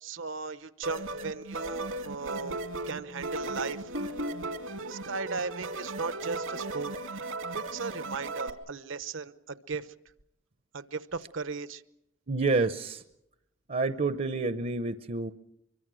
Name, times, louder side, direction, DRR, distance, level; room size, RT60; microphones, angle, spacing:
voice 1, 0.0-3.9 4.9-7.3 7.5-9.9 10.7-11.8, right 4 dB, 70° right, 14 dB, 0.9 m, -37 dB
sound 1, 0.8-8.5, right 2 dB, 85° right, 2.1 m, -36 dB
voice 2, 12.3-13.0 13.7-15.3, right 3 dB, 40° right, 11 dB, 0.8 m, -28 dB
24.5 x 23.5 x 6.3 m, 0.82 s
head